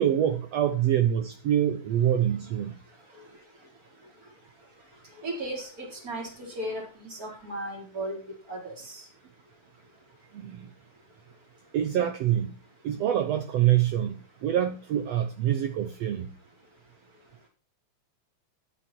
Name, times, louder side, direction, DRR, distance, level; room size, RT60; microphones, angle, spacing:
voice 1, 0.0-2.8 10.3-10.7 11.7-12.5 12.8-16.3, right 11 dB, 75° right, 9 dB, 1.5 m, -25 dB
voice 2, 5.2-8.2 8.5-8.7, right 1 dB, 25° right, 1 dB, 4.4 m, -35 dB
14.5 x 9.5 x 4.5 m, 0.34 s
omnidirectional pair, 4.0 m